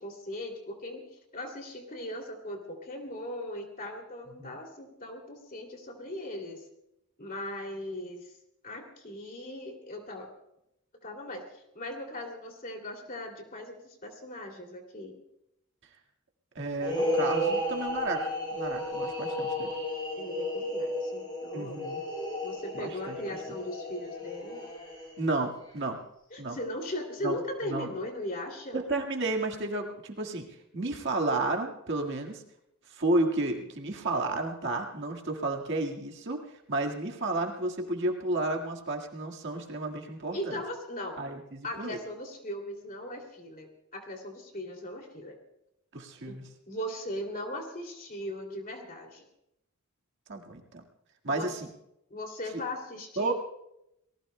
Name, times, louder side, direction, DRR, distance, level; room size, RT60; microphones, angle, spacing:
voice 1, 0.0-6.7 7.2-8.3 8.6-10.3 11.0-15.2 20.2-22.0 22.4-24.6 26.3-28.8 40.3-41.2 41.6-45.4 46.3-46.4 46.7-49.3 51.3-51.5 52.1-53.3, left 1 dB, 40° left, 3 dB, 2.6 m, -39 dB
voice 2, 16.6-19.7 21.5-22.0 22.7-23.3 25.2-26.0 26.4-26.6 27.2-27.4 27.7-27.9 28.7-30.5 30.7-32.4 32.9-40.6 41.2-42.0 45.9-46.5 50.3-50.8 51.2-51.7 53.2-53.3, right 2 dB, 55° right, 2 dB, 1.7 m, -32 dB
sound 1, 16.8-25.3, equal, 20° left, 7.7 m, -33 dB
29.5 x 19.0 x 2.2 m, 0.83 s
head